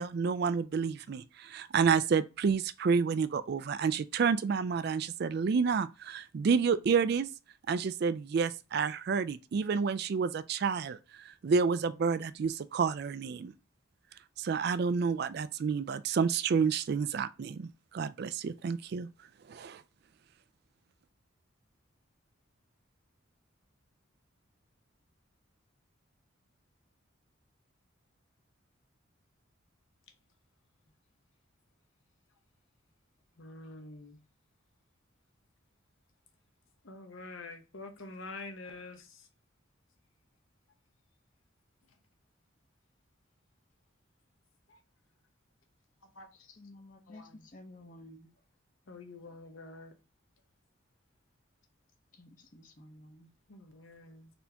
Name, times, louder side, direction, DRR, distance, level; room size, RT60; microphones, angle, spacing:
voice 1, 0.0-7.3 7.7-11.0 11.3-13.5 14.4-19.1 19.5-19.8, right 5 dB, 50° right, 0.3 m, -29 dB
voice 2, 33.4-34.2 36.8-39.3 44.7-44.8 46.1-46.6 47.1-47.5 48.9-49.9 53.5-54.3, left 3 dB, 80° left, 0.9 m, -47 dB
voice 3, 46.6-48.3 49.3-49.4 52.2-53.3, left 1 dB, 40° left, 0.8 m, -53 dB
4.2 x 3.4 x 2.8 m
head